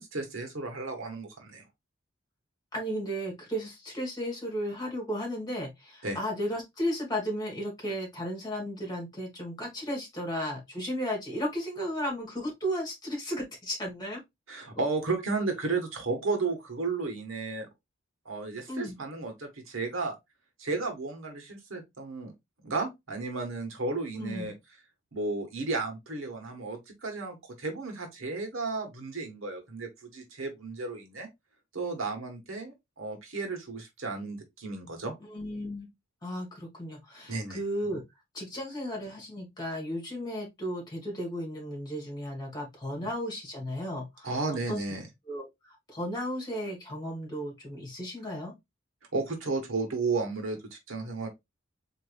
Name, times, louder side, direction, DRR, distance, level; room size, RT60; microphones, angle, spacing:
voice 1, 0.0-1.6 6.0-6.2 14.5-17.7 18.2-20.1 20.6-22.3 22.6-24.5 25.1-31.3 31.7-35.1 37.3-37.6 42.9-43.1 44.2-45.1 49.1-50.6 50.9-51.3, right 3 dB, 90° right, 1.5 m, -33 dB
voice 2, 2.7-14.2 18.7-19.0 24.2-24.5 35.2-35.9 36.2-38.0 38.3-44.4 44.7-44.8 45.3-48.5, equal, 20° left, 1.8 m, -34 dB
4.0 x 3.1 x 3.3 m
head